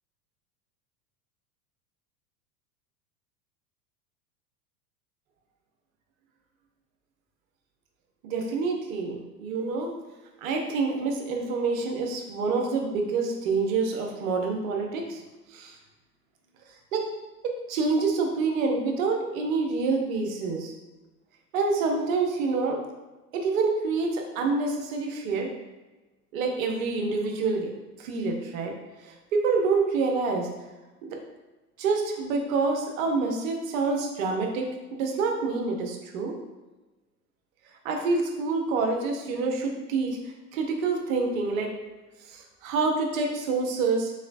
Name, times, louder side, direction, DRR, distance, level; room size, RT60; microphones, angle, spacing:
voice 1, 8.2-10.0 10.4-15.2 15.5-15.8 16.9-17.1 17.4-20.7 21.5-22.8 23.3-25.5 26.3-27.7 28.0-28.7 29.0-30.5 31.0-31.2 31.8-36.3 37.8-41.7 42.3-44.1, right 4 dB, 55° right, 2 dB, 0.8 m, -27 dB
3.9 x 3.0 x 2.5 m, 1.1 s
figure-of-eight pair, 85°, 48 cm